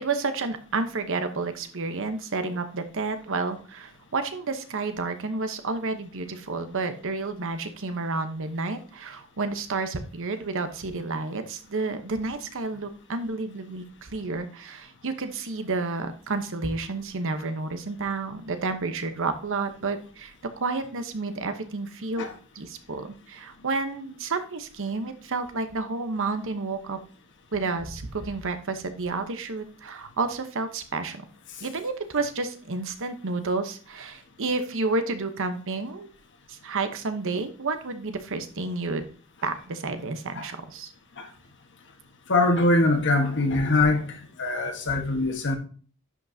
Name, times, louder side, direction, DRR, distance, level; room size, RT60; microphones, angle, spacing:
voice 1, 0.0-22.3 22.5-27.0 27.5-31.3 31.6-36.1 36.5-39.1 39.4-40.9, right 3 dB, 65° right, 1.0 m, -30 dB
voice 2, 42.3-45.6, left 2 dB, 55° left, 1.4 m, -23 dB
11.0 x 5.7 x 2.8 m
head